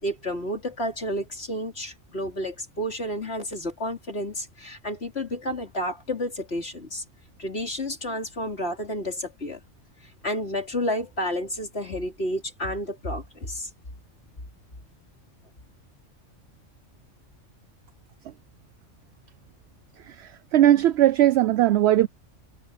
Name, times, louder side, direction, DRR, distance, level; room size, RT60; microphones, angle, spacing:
voice 1, 0.0-7.0 7.4-9.6 10.2-13.7, equal, 55° left, 3.9 m, -31 dB
voice 2, 20.0-22.1, right 13 dB, 65° right, 0.8 m, -19 dB
omnidirectional pair, 1.3 m